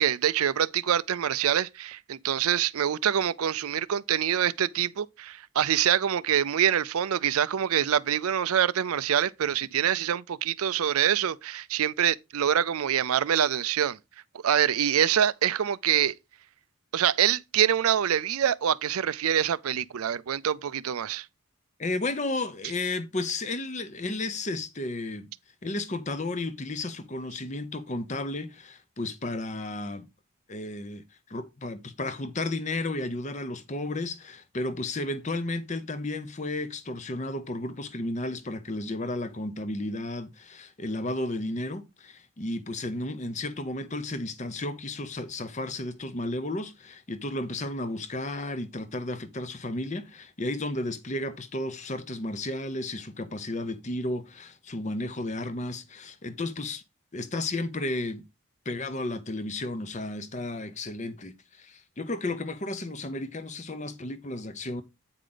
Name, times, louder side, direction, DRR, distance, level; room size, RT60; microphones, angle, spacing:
voice 1, 0.0-14.0 14.4-16.1 16.9-21.3, right 9 dB, 80° right, 0.4 m, -25 dB
voice 2, 21.8-25.3 25.6-30.1 30.5-56.8 57.1-58.3 58.7-64.8, left 2 dB, 30° left, 0.8 m, -33 dB
8.6 x 5.0 x 3.9 m
head